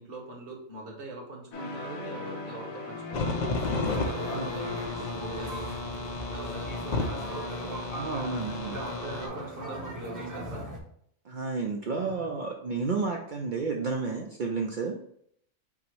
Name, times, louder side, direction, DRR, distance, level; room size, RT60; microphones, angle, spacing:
voice 1, 0.0-3.5 3.7-5.7 6.3-7.4 8.7-10.7, right 2 dB, 45° right, -1 dB, 1.3 m, -42 dB
sound 1, 1.5-7.4, left 3 dB, 90° left, 1.3 m, -40 dB
sound 2, 3.1-9.3, left 3 dB, 60° left, 0.4 m, -33 dB
sound 3, 3.6-10.8, right 1 dB, 15° right, 0.7 m, -39 dB
voice 2, 7.9-8.8 11.2-15.0, right 4 dB, 80° right, 1 dB, 0.4 m, -31 dB
5.8 x 2.0 x 4.6 m, 0.68 s
omnidirectional pair, 1.4 m